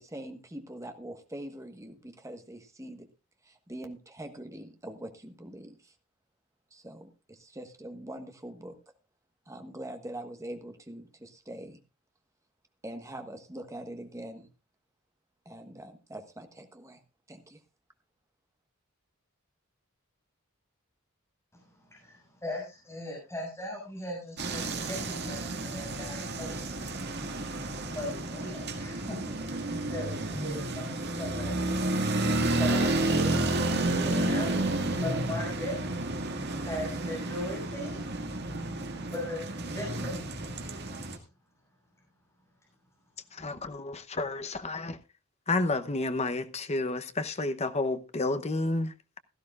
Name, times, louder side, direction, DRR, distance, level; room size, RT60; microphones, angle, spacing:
voice 1, 0.0-3.1 3.4-5.9 6.7-8.7 9.5-11.8 12.8-14.5 15.4-17.0 17.3-17.6, right 1 dB, 15° right, 1.4 m, -43 dB
voice 2, 21.5-27.2 27.9-29.3 29.7-32.0 32.5-36.1 36.6-38.4 39.1-40.2, left 1 dB, 15° left, 6.9 m, -39 dB
sound 1, 24.4-41.2, right 2 dB, 50° right, 1.9 m, -31 dB
voice 3, 43.3-45.0 45.5-49.2, left 2 dB, 30° left, 0.9 m, -31 dB
16.5 x 13.0 x 2.5 m
head